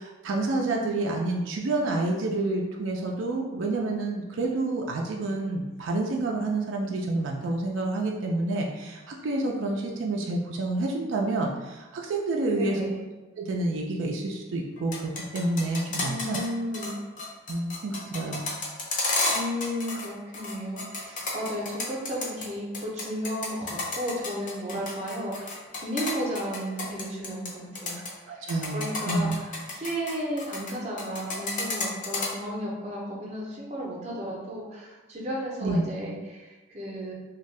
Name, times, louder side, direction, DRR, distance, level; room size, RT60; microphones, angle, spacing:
voice 1, 0.0-12.8 13.4-16.4 17.5-18.4 28.3-29.4 35.6-35.8, right 2 dB, 80° right, 0 dB, 0.4 m, -28 dB
voice 2, 12.5-13.0 16.0-17.0 19.3-37.1, equal, 35° right, -3 dB, 0.6 m, -34 dB
sound 1, 14.8-16.5 16.7-16.9 17.2-20.1 20.3-22.5 22.7-27.5 27.8-28.1 28.5-30.7 31.0-32.3, left 3 dB, 40° left, 0.5 m, -31 dB
2.6 x 2.2 x 3.2 m, 1.1 s
head